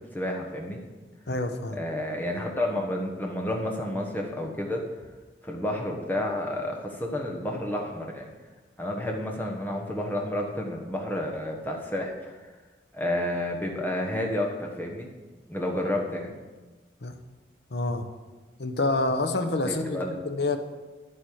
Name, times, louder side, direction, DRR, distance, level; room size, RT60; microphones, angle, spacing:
voice 1, 0.1-0.8 1.7-4.8 5.4-8.3 8.8-12.4 12.9-15.1 15.5-16.3 19.6-20.2, left 1 dB, 10° left, 0 dB, 1.3 m, -30 dB
voice 2, 1.3-1.8 17.0-17.1 17.7-18.1 18.6-20.6, left 2 dB, 75° left, 7 dB, 0.9 m, -27 dB
10.5 x 8.7 x 4.7 m, 1.3 s
head